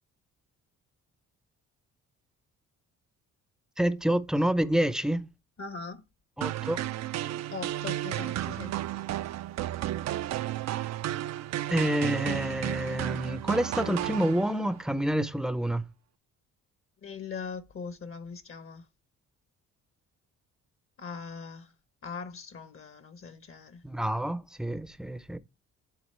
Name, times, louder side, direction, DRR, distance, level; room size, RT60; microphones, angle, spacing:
voice 1, 3.8-5.3 6.4-6.8 11.7-15.8 23.8-25.4, right 1 dB, ahead, 0.6 m, -28 dB
voice 2, 5.6-6.0 7.5-8.8 17.0-18.8 21.0-21.7 22.0-23.8, left 5 dB, 45° left, 1.0 m, -40 dB
sound 1, 6.4-14.8, right 13 dB, 60° right, 0.5 m, -33 dB
10.5 x 3.9 x 3.2 m
cardioid pair, 90°, 30 cm